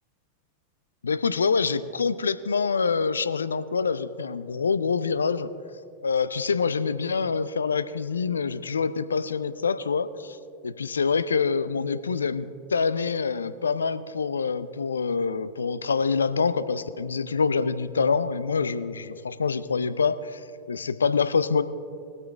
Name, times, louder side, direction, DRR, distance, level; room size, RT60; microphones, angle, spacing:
voice 1, 1.0-5.5 6.0-10.4 10.6-20.4 20.7-21.6, left 5 dB, 70° left, 13 dB, 0.5 m, -26 dB
20.5 x 8.2 x 3.4 m, 2.3 s
figure-of-eight pair, 90°, 0 cm